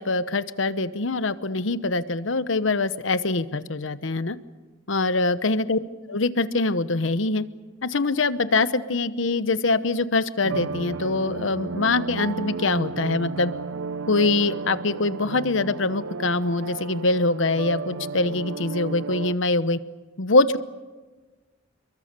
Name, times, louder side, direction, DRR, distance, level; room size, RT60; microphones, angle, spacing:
voice 1, 0.0-4.4 4.9-5.8 6.1-7.4 7.8-13.5 14.1-19.8 20.2-20.6, left 3 dB, 70° left, 13 dB, 1.0 m, -23 dB
sound 1, 10.4-19.4, right 4 dB, 90° right, 0.7 m, -33 dB
29.0 x 22.5 x 6.8 m, 1.3 s
head